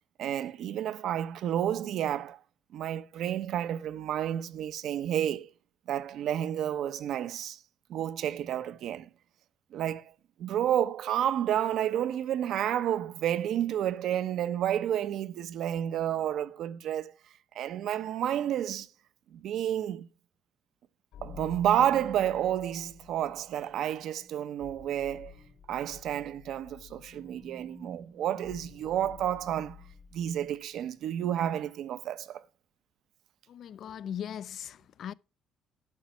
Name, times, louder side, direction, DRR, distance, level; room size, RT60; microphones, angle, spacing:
voice 1, 0.2-2.4 2.7-5.5 5.9-7.6 7.9-9.1 9.7-10.1 10.4-17.1 17.5-18.9 19.3-20.1 21.2-25.3 25.7-29.8 30.1-32.4, right 10 dB, 70° right, 0.8 m, -30 dB
sound 1, 21.1-30.3, left 3 dB, 85° left, 3.0 m, -50 dB
voice 2, 33.5-35.1, left 9 dB, 60° left, 0.4 m, -39 dB
12.0 x 5.2 x 5.9 m
cardioid pair, 125°, 0 cm